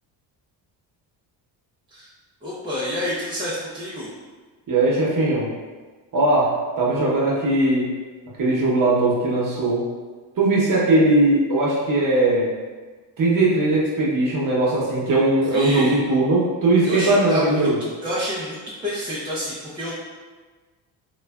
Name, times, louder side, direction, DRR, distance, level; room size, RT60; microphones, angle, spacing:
voice 1, 2.4-4.1 15.5-16.0 16.8-17.7 18.0-19.9, equal, 10° right, -10 dB, 0.5 m, -29 dB
voice 2, 4.7-5.5 6.1-7.9 8.4-9.9 10.4-12.5 13.2-17.8, right 2 dB, 45° right, -5 dB, 0.8 m, -19 dB
3.1 x 2.2 x 2.2 m, 1.4 s
supercardioid pair, 75°, 47 cm